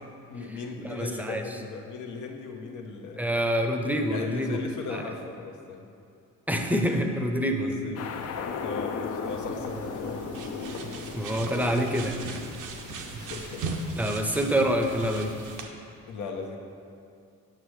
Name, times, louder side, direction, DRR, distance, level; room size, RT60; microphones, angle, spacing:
voice 1, 0.3-3.4 4.1-5.9 7.6-8.1 8.6-10.7 13.1-13.8 16.1-16.6, left 4 dB, 80° left, 2 dB, 0.9 m, -38 dB
voice 2, 0.9-1.4 3.2-4.6 4.9-5.0 6.5-7.9 11.1-12.2 14.0-15.3, equal, 5° right, 4 dB, 0.6 m, -26 dB
sound 1, 8.0-15.6, left 5 dB, 55° left, 0.5 m, -38 dB
sound 2, 9.2-15.7, right 3 dB, 85° right, 0.7 m, -38 dB
7.9 x 6.1 x 3.2 m, 2.5 s
cardioid pair, 90°, 30 cm